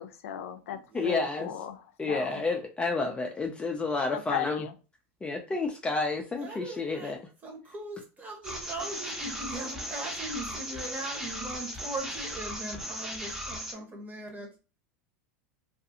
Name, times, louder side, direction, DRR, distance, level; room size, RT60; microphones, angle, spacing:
voice 1, 0.0-2.4 4.1-4.7, left 10 dB, 85° left, 0.4 m, -36 dB
voice 2, 0.9-1.5 2.0-4.6 5.2-7.2, left 3 dB, 15° left, 0.4 m, -30 dB
voice 3, 6.4-7.2 7.4-14.6, right 2 dB, 25° right, 1.0 m, -39 dB
sound 1, 8.4-13.7, equal, 5° right, 0.7 m, -37 dB
2.4 x 2.3 x 2.7 m
supercardioid pair, 110°, 7 cm